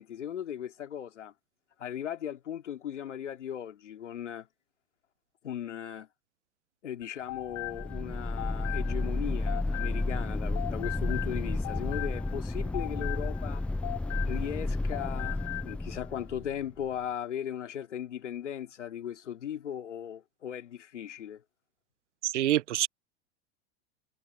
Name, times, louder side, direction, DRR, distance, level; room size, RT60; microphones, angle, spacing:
voice 1, 0.0-1.3 1.8-4.5 5.4-6.1 6.8-13.6 14.2-21.4, left 9 dB, 85° left, 2.7 m, -38 dB
sound 1, 7.0-10.3 10.6-14.6 14.9-15.7, left 23 dB, 50° left, 5.1 m, -40 dB
sound 2, 7.5-16.8, left 2 dB, 5° left, 0.4 m, -32 dB
voice 2, 22.2-22.9, right 13 dB, 80° right, 0.8 m, -26 dB
hypercardioid pair, 95°, 35 cm